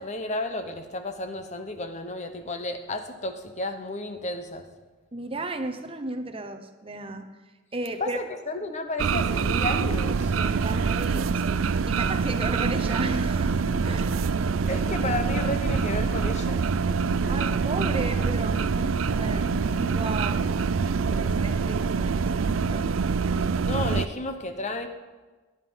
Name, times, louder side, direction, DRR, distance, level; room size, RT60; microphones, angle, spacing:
voice 1, 0.0-4.6 8.0-10.4 14.7-16.7 23.6-24.9, left 2 dB, 35° left, 7 dB, 1.0 m, -32 dB
voice 2, 5.1-7.3 7.7-8.2 10.3-14.1 17.3-18.6 19.1-20.5 21.3-23.0, right 2 dB, 25° right, 6 dB, 0.9 m, -34 dB
sound 1, 9.0-24.1, right 5 dB, 85° right, 0.5 m, -25 dB
sound 2, 13.3-21.9, equal, 5° right, 4.8 m, -40 dB
18.5 x 11.0 x 5.7 m, 1.3 s
head